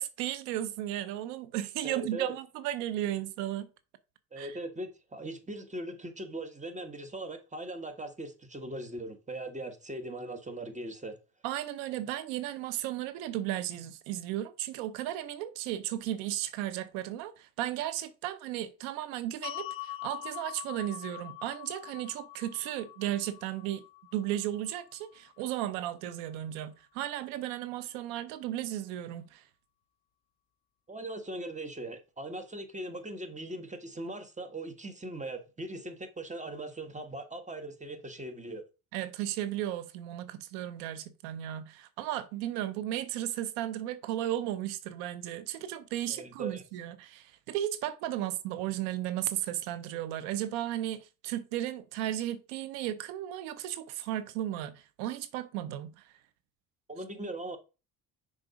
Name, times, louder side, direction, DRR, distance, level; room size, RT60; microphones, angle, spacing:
voice 1, 0.0-3.7 4.4-4.5 11.4-23.8 24.1-29.4 38.9-56.1, right 13 dB, 90° right, 0.6 m, -35 dB
voice 2, 1.8-2.3 4.3-11.2 30.9-38.6 46.1-46.6 56.9-57.6, right 1 dB, 20° right, 1.5 m, -40 dB
sound 1, 19.4-25.6, left 15 dB, 65° left, 0.6 m, -44 dB
6.3 x 3.8 x 4.9 m
supercardioid pair, 65°, 37 cm